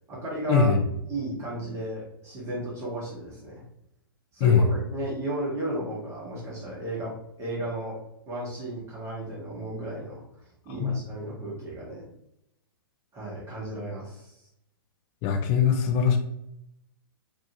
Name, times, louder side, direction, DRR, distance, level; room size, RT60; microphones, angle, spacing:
voice 1, 0.1-0.7 1.1-3.6 4.3-8.0 8.3-10.2 10.6-12.1 13.1-14.4, right 1 dB, 20° right, -4 dB, 0.9 m, -34 dB
voice 2, 15.2-16.2, left 6 dB, 30° left, 4 dB, 0.5 m, -21 dB
2.6 x 2.3 x 2.7 m, 0.81 s
figure-of-eight pair, 115°, 13 cm